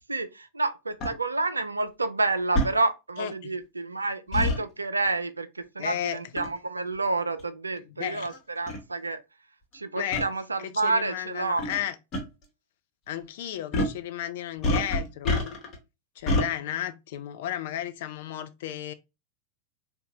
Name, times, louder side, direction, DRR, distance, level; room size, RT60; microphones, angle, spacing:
voice 1, 0.1-9.2 9.7-11.6, right 3 dB, 80° right, 0.3 m, -29 dB
sound 1, 1.0-1.1 2.5-2.7 4.3-4.6 6.4-6.6 7.4-7.5 8.3-8.4 8.7-8.8 10.1-10.3 11.6-11.8 12.1-12.2 13.7-14.0 14.6-15.7 16.3-16.5, left 1 dB, 35° left, 1.1 m, -26 dB
voice 2, 3.2-3.5 5.8-6.2 8.0-8.3 10.0-10.2 10.8-12.0 13.1-15.4 16.2-18.9, left 11 dB, 55° left, 0.4 m, -33 dB
3.7 x 2.2 x 2.8 m
figure-of-eight pair, 90°, 0 cm